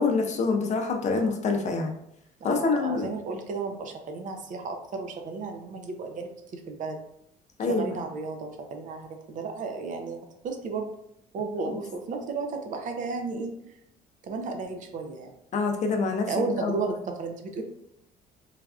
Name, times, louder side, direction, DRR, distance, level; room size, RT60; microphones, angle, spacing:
voice 1, 0.0-1.9 2.4-3.1 7.6-7.8 15.5-16.3 16.6-16.8, left 4 dB, 45° left, 4 dB, 0.5 m, -26 dB
voice 2, 2.4-7.0 7.7-10.2 10.4-11.0 11.3-13.5 14.2-15.3 16.3-17.6, right 4 dB, 50° right, 4 dB, 0.5 m, -33 dB
3.2 x 2.4 x 2.3 m, 0.76 s
cardioid pair, 110°, 17 cm